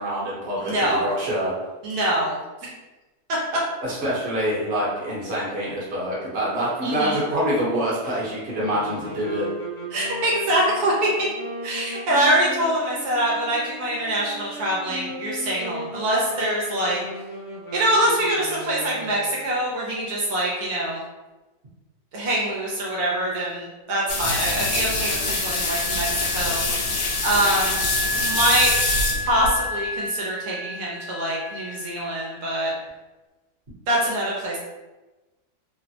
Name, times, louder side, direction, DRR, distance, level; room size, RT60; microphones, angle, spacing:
voice 1, 0.0-1.5 3.8-9.5, equal, 45° right, -6 dB, 1.1 m, -26 dB
voice 2, 0.7-1.1 1.8-2.4 6.8-7.2 9.9-11.3 11.6-17.0 17.7-21.0 22.1-26.6 27.2-27.8 28.2-28.7 29.2-32.7 33.9-34.6, right 1 dB, 80° right, -4 dB, 1.1 m, -24 dB
sound 1, 8.5-19.4, right 1 dB, 35° left, 1.1 m, -36 dB
sound 2, 24.1-29.6, left 2 dB, 85° left, 1.2 m, -25 dB
Wind instrument woodwind instrument, 24.3-32.6, left 1 dB, 70° left, 0.7 m, -32 dB
3.1 x 2.0 x 2.7 m, 1.1 s
omnidirectional pair, 1.6 m